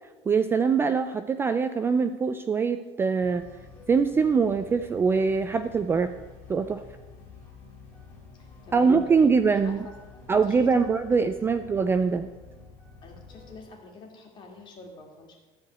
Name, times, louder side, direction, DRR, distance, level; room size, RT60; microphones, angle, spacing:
voice 1, 0.3-3.4 3.9-6.1 6.5-6.8 8.7-9.9 10.3-12.3, right 5 dB, 15° right, 9 dB, 0.3 m, -23 dB
sound 1, 3.2-13.6, left 4 dB, 15° left, 2.8 m, -49 dB
voice 2, 8.4-9.3 9.6-10.9 11.5-11.7 13.0-15.3, left 3 dB, 35° left, 0 dB, 2.6 m, -47 dB
13.5 x 4.7 x 7.9 m, 1.2 s
cardioid pair, 155°, 13 cm